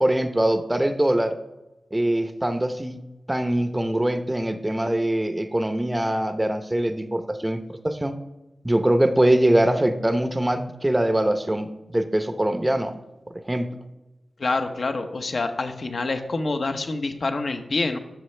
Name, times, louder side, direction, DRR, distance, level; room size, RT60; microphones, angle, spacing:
voice 1, 0.0-1.4 1.9-3.0 3.3-8.1 8.6-13.0 13.3-13.7, right 1 dB, 15° right, 8 dB, 0.7 m, -23 dB
voice 2, 14.4-18.0, left 3 dB, 55° left, 7 dB, 0.9 m, -26 dB
13.0 x 6.6 x 3.3 m, 1.0 s
wide cardioid pair, 80°, 0 cm